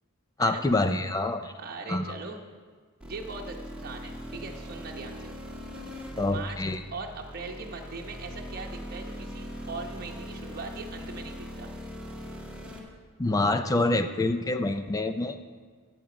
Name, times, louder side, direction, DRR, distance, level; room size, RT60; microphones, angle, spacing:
voice 1, 0.4-1.5 1.9-2.1 6.2-6.8 13.2-15.6, left 2 dB, 15° left, 8 dB, 0.4 m, -26 dB
voice 2, 1.6-2.4 3.0-5.3 6.3-11.7, right 3 dB, 45° right, 0 dB, 1.0 m, -40 dB
sound 1, 3.0-12.8, equal, 5° right, 1.7 m, -41 dB
15.5 x 7.9 x 5.0 m, 1.5 s
head